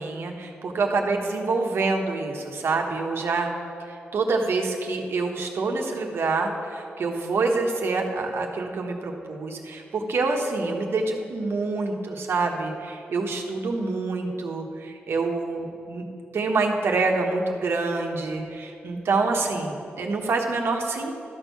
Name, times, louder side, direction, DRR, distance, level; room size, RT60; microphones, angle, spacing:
voice 1, 0.0-3.5 3.9-16.0 16.3-21.2, right 3 dB, 75° right, 2 dB, 1.2 m, -26 dB
13.0 x 4.6 x 6.9 m, 2.7 s
cardioid pair, 75°, 4 cm